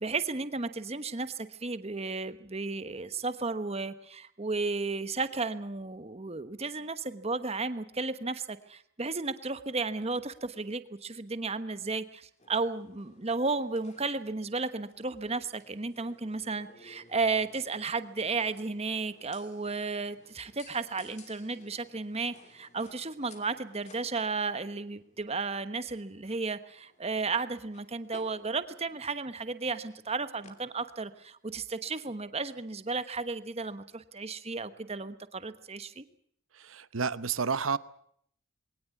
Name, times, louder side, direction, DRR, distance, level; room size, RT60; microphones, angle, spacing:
voice 1, 0.0-36.0, right 3 dB, 30° right, 12 dB, 1.1 m, -34 dB
sound 1, 12.4-31.3, left 3 dB, 35° left, 3.0 m, -59 dB
voice 2, 36.5-37.8, right 5 dB, 70° right, 16 dB, 0.9 m, -30 dB
22.0 x 18.5 x 8.5 m, 0.67 s
head